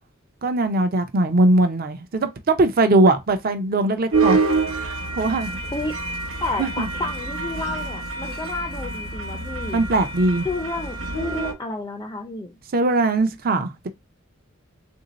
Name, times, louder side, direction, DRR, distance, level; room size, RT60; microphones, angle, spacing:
voice 1, 0.4-4.4 4.7-5.6 6.6-6.9 9.7-10.5 12.7-13.9, right 2 dB, 45° right, 0.6 m, -20 dB
sound 1, 4.1-11.5, right 3 dB, 80° right, 0.8 m, -27 dB
voice 2, 6.4-9.8 10.4-12.5, left 2 dB, 20° left, 0.4 m, -30 dB
3.6 x 2.7 x 3.9 m
head